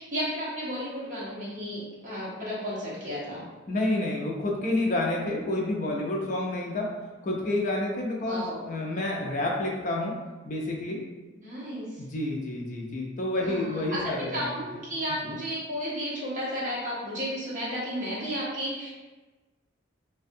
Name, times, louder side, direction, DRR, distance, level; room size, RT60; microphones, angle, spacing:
voice 1, 0.0-3.4 8.2-8.7 11.3-12.0 13.4-18.9, equal, 40° right, -7 dB, 0.8 m, -33 dB
voice 2, 3.7-6.9 7.2-10.1 10.4-11.0 12.0-14.6 15.2-15.4, left 2 dB, 40° left, -1 dB, 0.4 m, -29 dB
2.5 x 2.2 x 2.6 m, 1.2 s
head